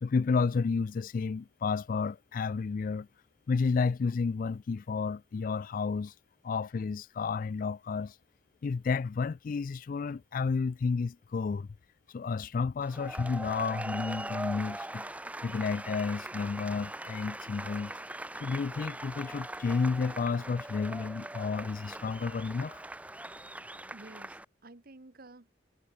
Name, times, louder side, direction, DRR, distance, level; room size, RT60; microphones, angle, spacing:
voice 1, 0.0-3.1 3.5-6.1 6.4-8.1 8.6-11.7 12.1-15.0 15.4-17.9 18.4-22.8, left 5 dB, 45° left, 0.3 m, -31 dB
sound 1, 12.8-24.4, right 1 dB, 10° right, 1.1 m, -41 dB
voice 2, 23.9-25.5, right 2 dB, 50° right, 1.3 m, -52 dB
head